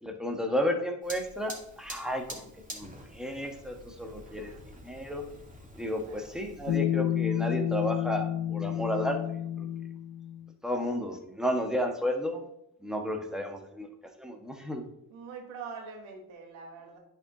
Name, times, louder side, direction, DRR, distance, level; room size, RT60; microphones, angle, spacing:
voice 1, 0.0-5.2 5.7-9.2 9.6-9.7 10.6-12.5 12.8-13.9 14.2-14.8, equal, ahead, 3 dB, 1.4 m, -32 dB
Fire, 1.0-6.8, equal, 15° right, 2.3 m, -47 dB
voice 2, 4.2-4.7 6.0-6.4 15.1-17.0, right 5 dB, 85° right, 2 dB, 1.5 m, -45 dB
sound 1, 6.7-10.5, left 11 dB, 50° left, 0.5 m, -30 dB
10.5 x 4.4 x 3.0 m, 0.77 s
hypercardioid pair, 50°, 48 cm